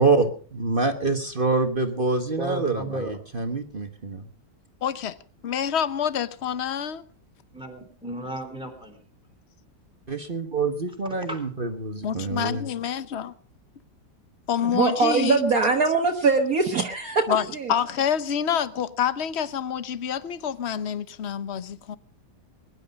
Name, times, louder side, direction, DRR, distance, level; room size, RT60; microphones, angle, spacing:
voice 1, 0.0-4.3 10.1-12.7, right 3 dB, 35° right, 1.4 m, -26 dB
voice 2, 2.4-3.2 7.5-9.0 11.1-11.4, right 2 dB, 5° right, 3.8 m, -34 dB
voice 3, 4.8-5.1 5.4-7.0 12.0-13.3 14.5-15.4 17.3-17.4 17.7-22.0, left 8 dB, 45° left, 1.0 m, -27 dB
voice 4, 14.7-17.7, right 4 dB, 55° right, 1.8 m, -22 dB
21.5 x 11.5 x 5.3 m
omnidirectional pair, 1.9 m